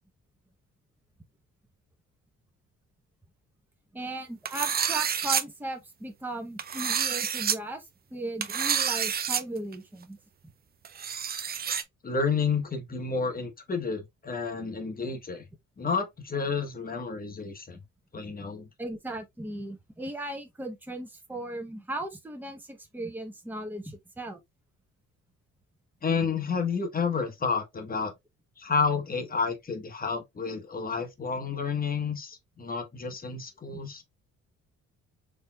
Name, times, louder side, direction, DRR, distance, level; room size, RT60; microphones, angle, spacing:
voice 1, 3.9-7.8 8.1-10.2 17.7-17.8 18.4-18.5 18.8-24.4, right 2 dB, 5° right, 0.9 m, -37 dB
sound 1, 4.4-5.4 6.6-7.6 8.4-9.4 9.7-9.8 10.8-11.8, right 7 dB, 30° right, 0.4 m, -28 dB
voice 2, 12.0-15.4 15.8-17.8 18.1-18.7 26.0-28.1 28.6-34.0, left 5 dB, 30° left, 1.0 m, -30 dB
4.1 x 3.3 x 2.2 m
cardioid pair, 90°, 30 cm